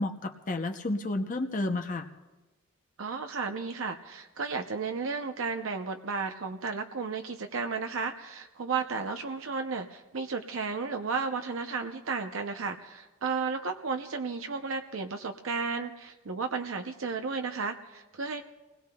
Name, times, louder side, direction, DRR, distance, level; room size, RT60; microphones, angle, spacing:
voice 1, 0.0-2.1, left 2 dB, 35° left, 5 dB, 0.7 m, -31 dB
voice 2, 3.0-18.4, right 4 dB, 70° right, 5 dB, 0.7 m, -33 dB
29.0 x 20.0 x 2.3 m, 1.1 s
head